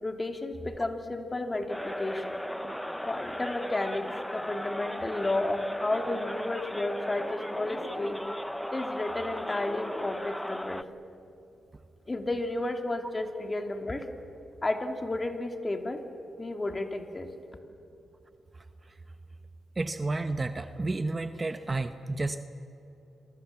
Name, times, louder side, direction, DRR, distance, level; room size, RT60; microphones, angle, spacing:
voice 1, 0.0-2.4 3.0-8.2 8.7-10.8 12.1-14.1 14.6-16.0 16.4-17.3, left 2 dB, 25° left, 5 dB, 2.7 m, -32 dB
sound 1, 1.7-10.8, equal, 5° left, 0.8 m, -36 dB
voice 2, 19.8-22.4, right 2 dB, 30° right, 9 dB, 1.0 m, -31 dB
27.5 x 23.5 x 7.2 m, 2.9 s
cardioid pair, 75°, 0 cm